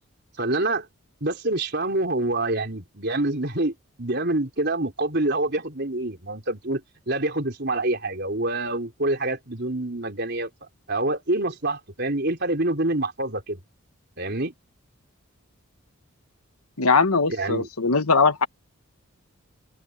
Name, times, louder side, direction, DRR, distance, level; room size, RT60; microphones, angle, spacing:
voice 1, 0.4-0.9 1.2-10.5 10.9-13.6 14.2-14.5 17.3-17.7, right 2 dB, 50° right, 4.3 m, -26 dB
voice 2, 16.8-18.5, left 4 dB, 85° left, 1.5 m, -20 dB
open air
head